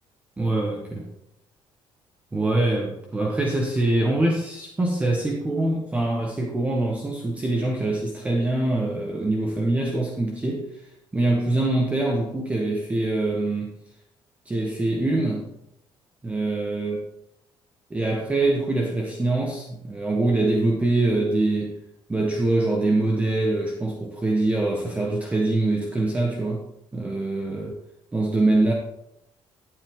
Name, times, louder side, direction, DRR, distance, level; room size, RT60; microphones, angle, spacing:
voice 1, 0.4-1.1 2.3-10.8 11.1-13.7 14.4-15.4 16.2-17.0 17.9-21.8 22.1-26.6 26.9-27.7 28.1-28.7, right 2 dB, 15° right, 0 dB, 1.2 m, -24 dB
12.0 x 7.8 x 3.7 m, 0.80 s
cardioid pair, 140°, 9 cm